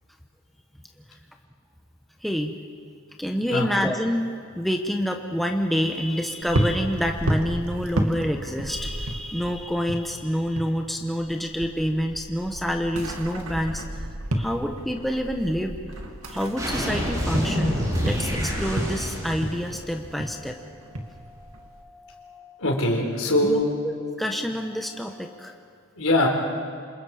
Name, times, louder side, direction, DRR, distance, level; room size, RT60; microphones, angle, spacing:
voice 1, 2.2-2.5 3.2-4.3 4.5-13.8 14.3-15.8 16.3-17.8 18.0-22.5 23.4-25.6, equal, ahead, 3 dB, 1.1 m, -27 dB
sound 1, 6.4-10.8 11.0-21.8, right 1 dB, 75° right, 2.3 m, -32 dB
sound 2, 16.6-20.3, equal, 15° right, 7.3 m, -28 dB
voice 2, 22.6-23.7 25.9-26.3, left 1 dB, 75° left, 1 dB, 4.3 m, -22 dB
28.5 x 26.5 x 5.1 m, 2.2 s
head